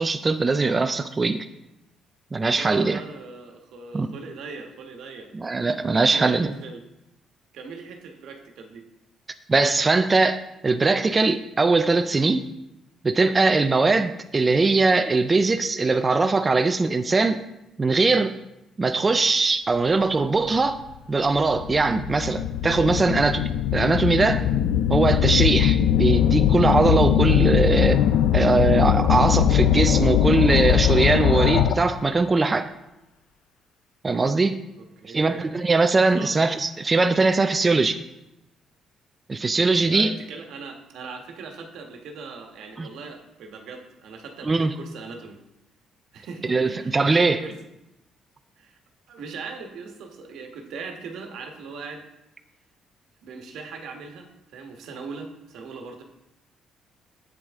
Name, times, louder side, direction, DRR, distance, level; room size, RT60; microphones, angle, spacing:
voice 1, 0.0-1.5 2.3-3.0 3.9-4.1 5.3-6.5 9.5-12.4 13.0-17.4 17.8-18.3 18.8-20.8 21.1-23.4 23.7-24.4 24.9-28.0 28.3-32.7 34.0-34.6 35.0-38.0 39.3-40.1 42.8-42.9 44.5-44.7 46.5-47.4, right 3 dB, 25° right, 8 dB, 0.4 m, -21 dB
voice 2, 2.5-5.3 6.0-6.8 7.5-8.8 34.8-35.5 36.1-36.3 39.8-45.4 46.1-47.5 48.6-48.8 49.1-52.0 53.2-56.0, right 4 dB, 75° right, 4 dB, 1.3 m, -40 dB
sound 1, 20.6-20.7 21.3-32.0, left 10 dB, 85° left, 0.4 m, -21 dB
8.5 x 8.1 x 3.6 m, 0.92 s
cardioid pair, 105°, 0 cm